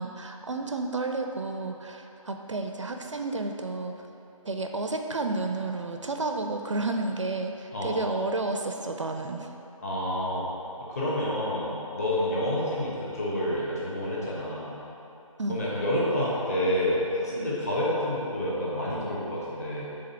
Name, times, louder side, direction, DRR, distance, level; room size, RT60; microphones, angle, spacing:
voice 1, 0.0-4.0 4.4-9.5 15.4-15.6, right 2 dB, 60° right, 4 dB, 0.5 m, -31 dB
voice 2, 9.8-10.5 10.9-14.7 15.5-19.8, left 1 dB, 25° left, -7 dB, 1.2 m, -28 dB
5.2 x 3.8 x 5.7 m, 2.9 s
figure-of-eight pair, 160°, 18 cm